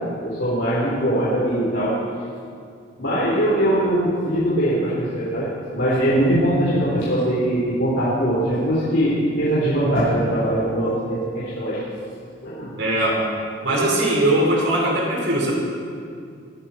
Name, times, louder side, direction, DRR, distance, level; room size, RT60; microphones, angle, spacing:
voice 1, 0.0-2.0 3.0-11.8 12.4-12.7, right 1 dB, 70° left, -9 dB, 4.5 m, -21 dB
voice 2, 12.8-13.2 13.6-15.5, right 1 dB, 80° right, -3 dB, 5.1 m, -20 dB
23.0 x 13.5 x 4.6 m, 2.3 s
head